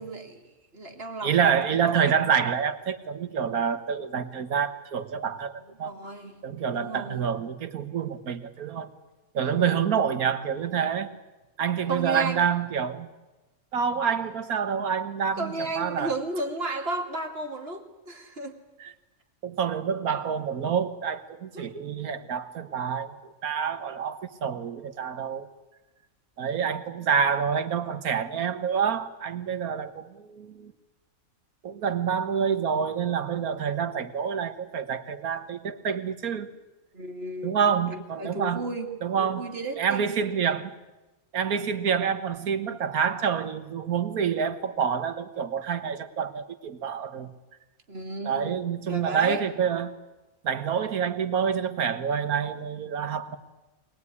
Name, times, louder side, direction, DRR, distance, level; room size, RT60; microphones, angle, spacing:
voice 1, 0.0-2.2 5.8-6.4 6.7-7.3 9.4-9.8 11.9-12.5 15.4-18.6 21.5-21.7 36.9-38.9 39.2-40.3 47.9-49.4, right 2 dB, 45° right, 4 dB, 2.5 m, -34 dB
voice 2, 1.2-5.9 6.4-8.9 9.3-11.1 11.6-13.1 13.7-16.1 18.8-18.9 19.4-25.5 26.4-30.7 31.6-36.5 37.4-38.6 39.0-39.5 39.8-40.7 41.3-47.3 48.2-49.9 50.4-53.4, right 7 dB, 90° right, 11 dB, 1.8 m, -27 dB
24.0 x 19.5 x 9.7 m, 1.1 s
omnidirectional pair, 1.5 m